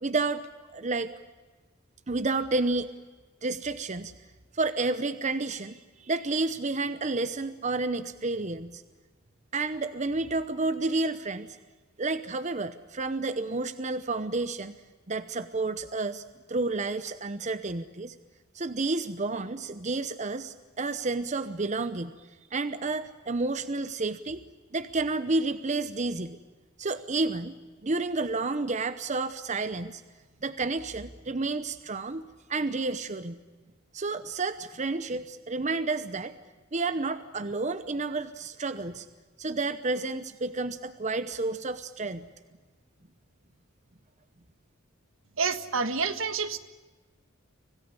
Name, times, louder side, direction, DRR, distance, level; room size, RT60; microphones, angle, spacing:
voice 1, 0.0-1.1 2.1-2.9 3.4-4.1 4.5-8.8 9.5-11.6 12.0-14.8 15.1-16.2 16.5-18.1 18.5-22.1 22.5-24.4 24.7-26.4 26.8-27.5 27.8-30.0 30.4-32.2 32.5-33.4 33.9-36.3 36.7-39.1 39.4-42.3, right 3 dB, 35° right, 12 dB, 0.8 m, -30 dB
voice 2, 45.4-46.6, right 4 dB, 75° right, 10 dB, 1.6 m, -28 dB
25.5 x 18.0 x 9.9 m, 1.3 s
head